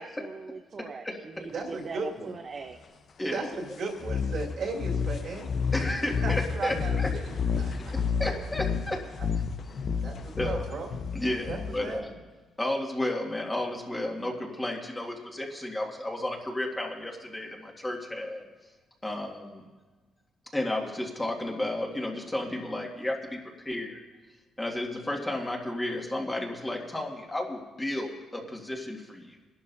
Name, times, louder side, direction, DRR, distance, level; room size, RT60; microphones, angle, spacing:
voice 1, 0.0-2.8, right 4 dB, 45° right, 4 dB, 0.8 m, -41 dB
voice 2, 0.8-1.4 3.2-3.5 5.7-7.1 7.7-9.0 10.4-10.6 11.1-12.1 12.6-18.4 19.0-19.6 20.5-24.0 24.6-29.4, left 1 dB, 15° left, 0 dB, 2.0 m, -33 dB
voice 3, 1.5-2.3 3.3-6.0 6.2-7.7 10.0-10.9 11.5-12.2, right 3 dB, 65° right, -1 dB, 2.8 m, -36 dB
sound 1, 4.0-12.0, left 6 dB, 55° left, 0.8 m, -30 dB
23.5 x 12.0 x 2.7 m, 1.3 s
cardioid pair, 90°, 0 cm